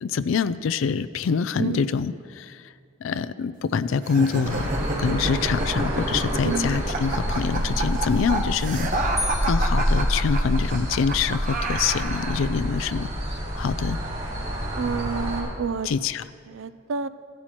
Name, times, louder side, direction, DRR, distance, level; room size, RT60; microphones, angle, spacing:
voice 1, 0.0-2.6 3.0-9.1 9.4-13.1 13.5-14.0 15.8-16.2, left 6 dB, 70° left, 16 dB, 0.3 m, -25 dB
sound 1, 4.0-12.5, right 2 dB, 40° right, 1.0 m, -30 dB
sound 2, 4.4-15.4, equal, 55° right, 3.6 m, -27 dB
voice 2, 6.4-6.8 14.8-15.9 16.5-17.1, right 5 dB, 70° right, 14 dB, 0.4 m, -29 dB
sound 3, 9.2-10.9, equal, ahead, 0.7 m, -35 dB
15.5 x 12.5 x 3.0 m, 2.2 s
head